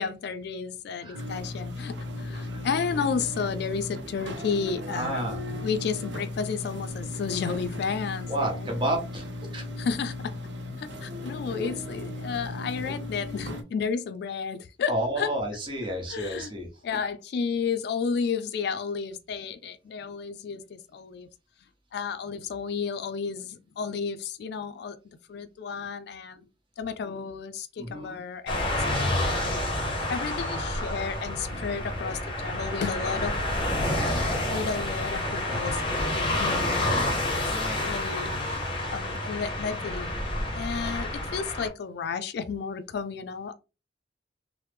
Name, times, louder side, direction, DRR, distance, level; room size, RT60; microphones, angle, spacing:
voice 1, 0.0-5.2 5.6-8.7 9.8-10.3 10.8-15.3 16.1-16.5 16.8-21.3 21.9-25.0 25.3-26.5 26.8-33.4 34.1-38.6 38.9-40.1 40.5-43.5, left 6 dB, 60° left, 0.3 m, -32 dB
sound 1, 1.1-13.6, left 2 dB, 70° right, 0.6 m, -36 dB
voice 2, 4.9-5.4 8.3-9.7 14.9-16.7 27.8-28.2 37.5-37.9, right 1 dB, 25° right, 1.0 m, -31 dB
sound 2, 28.5-41.7, left 1 dB, 25° left, 0.8 m, -29 dB
3.1 x 2.0 x 3.3 m
head